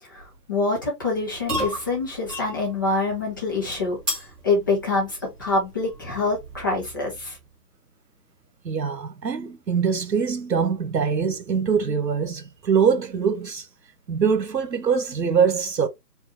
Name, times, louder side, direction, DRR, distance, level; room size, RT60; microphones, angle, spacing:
voice 1, 0.0-7.4, left 3 dB, 15° left, 0.9 m, -26 dB
sound 1, 1.1-7.5, equal, 5° right, 1.2 m, -36 dB
voice 2, 8.6-13.7 14.1-15.9, right 6 dB, 90° right, 1.1 m, -23 dB
4.8 x 2.7 x 2.7 m
hypercardioid pair, 165°, 49 cm